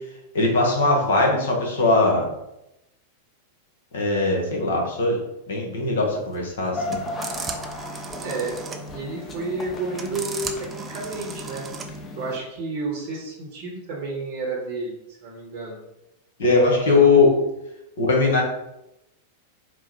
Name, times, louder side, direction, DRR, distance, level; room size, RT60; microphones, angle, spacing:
voice 1, 0.3-2.3 3.9-5.2 5.5-7.0 16.4-17.3 18.0-18.4, left 3 dB, 70° left, 0 dB, 1.2 m, -20 dB
sound 1, 6.1-12.0, right 5 dB, 25° right, 0.5 m, -37 dB
sound 2, 6.7-12.4, left 2 dB, 25° left, 0.7 m, -35 dB
voice 2, 8.2-8.6 8.9-11.7 12.2-15.8 16.9-17.2, right 3 dB, 55° right, -3 dB, 1.1 m, -31 dB
4.4 x 2.1 x 4.5 m, 0.89 s
hypercardioid pair, 100°, 0 cm